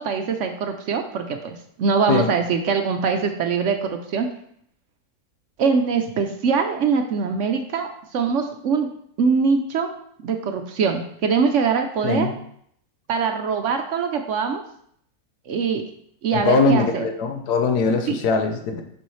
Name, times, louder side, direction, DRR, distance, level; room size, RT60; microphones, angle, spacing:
voice 1, 0.0-4.3 5.6-8.9 9.2-9.9 10.2-12.3 13.1-14.6 15.5-15.8 16.2-17.1 18.1-18.2, right 5 dB, 65° right, 5 dB, 0.8 m, -23 dB
voice 2, 16.3-18.8, left 3 dB, 90° left, 5 dB, 1.4 m, -21 dB
6.7 x 5.4 x 3.2 m, 0.67 s
omnidirectional pair, 1.6 m